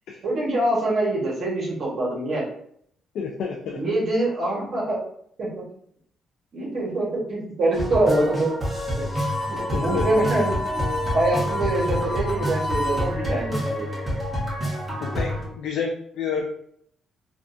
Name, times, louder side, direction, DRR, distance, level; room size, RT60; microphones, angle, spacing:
voice 1, 0.2-2.4 3.7-5.0 5.4-5.6 6.5-8.5 8.9-9.0 9.5-10.6 11.1-13.9, right 2 dB, 60° right, -4 dB, 1.2 m, -24 dB
voice 2, 3.1-3.8 9.7-10.3 15.0-16.5, left 5 dB, 75° left, 0 dB, 0.4 m, -29 dB
sound 1, 7.7-15.4, equal, 15° right, 1.4 m, -28 dB
Harmonica, 9.0-13.1, left 1 dB, 35° left, 0.8 m, -30 dB
3.5 x 2.3 x 2.6 m, 0.66 s
cardioid pair, 90°, 0 cm